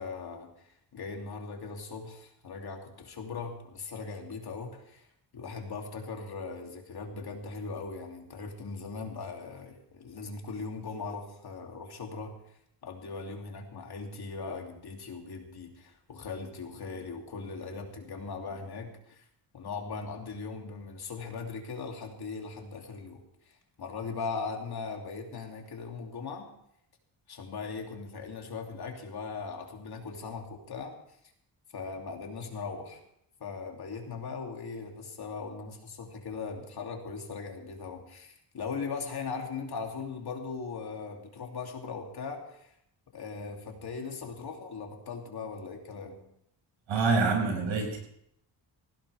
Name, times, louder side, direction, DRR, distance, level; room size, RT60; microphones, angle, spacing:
voice 1, 0.0-5.1 5.3-12.3 12.8-19.2 19.5-26.5 27.3-30.9 31.7-33.0 33.4-42.7 43.1-46.2, left 4 dB, 55° left, 1 dB, 3.0 m, -39 dB
voice 2, 46.9-48.0, right 4 dB, 80° right, 1 dB, 6.3 m, -26 dB
19.0 x 16.5 x 3.5 m, 0.72 s
cardioid pair, 110°, 45 cm